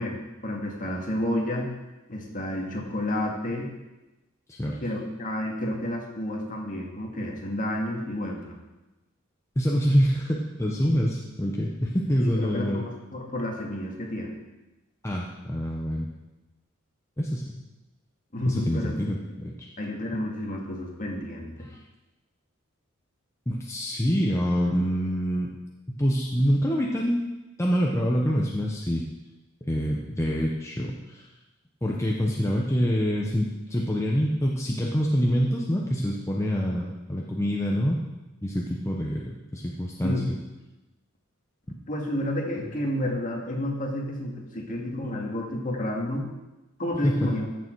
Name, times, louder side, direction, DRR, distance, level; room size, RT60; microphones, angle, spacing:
voice 1, 0.0-1.7 2.1-3.7 4.6-8.6 12.2-14.4 18.3-18.9 19.8-21.7 40.0-40.2 41.9-46.3 46.8-47.5, left 1 dB, 40° left, 0 dB, 2.0 m, -30 dB
voice 2, 9.6-12.8 15.0-16.1 17.2-17.6 18.5-19.7 23.5-25.5 25.9-27.2 27.6-29.0 29.6-31.3 31.8-38.0 38.4-40.4 47.0-47.3, equal, 15° left, -2 dB, 0.9 m, -26 dB
14.5 x 6.8 x 4.7 m, 1.0 s
head